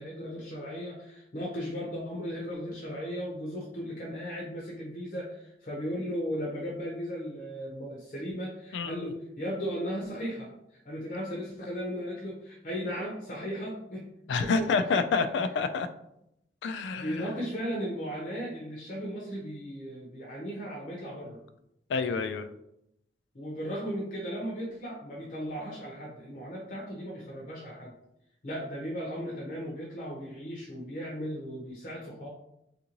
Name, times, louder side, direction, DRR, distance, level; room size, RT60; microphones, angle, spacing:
voice 1, 0.0-10.5 10.8-14.1 14.4-15.3 17.0-21.4 23.3-27.9 28.4-32.3, equal, 45° left, -3 dB, 0.6 m, -36 dB
voice 2, 8.7-9.1 14.3-15.9 16.6-17.3 21.9-22.5, left 4 dB, 80° left, 11 dB, 0.3 m, -28 dB
3.6 x 2.5 x 2.9 m, 0.79 s
head